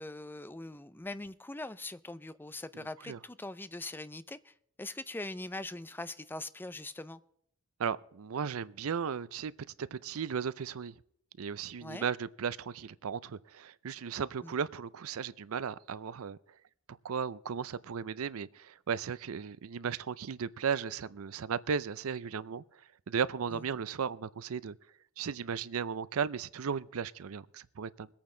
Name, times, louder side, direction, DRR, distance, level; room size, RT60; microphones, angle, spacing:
voice 1, 0.0-7.2 11.8-12.1 14.4-14.5 23.5-23.6, left 2 dB, 10° left, 0.5 m, -42 dB
voice 2, 7.8-9.5 9.8-11.0 11.4-16.4 17.0-22.6 23.1-24.8 25.2-28.1, right 6 dB, 80° right, 0.5 m, -35 dB
22.5 x 8.7 x 3.8 m
head